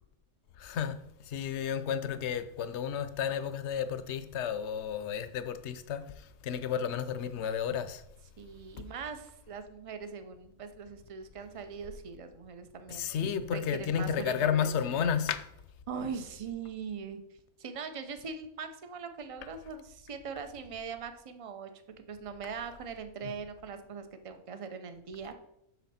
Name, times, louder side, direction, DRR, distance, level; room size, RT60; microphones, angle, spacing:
voice 1, 0.6-1.0 1.3-6.0 6.4-8.0 12.9-15.4, left 8 dB, 60° left, 0.9 m, -32 dB
voice 2, 8.4-13.1 13.5-15.2 15.9-17.2 17.6-21.7 22.1-25.4, right 6 dB, 40° right, 0.5 m, -41 dB
8.3 x 6.4 x 4.2 m
omnidirectional pair, 1.5 m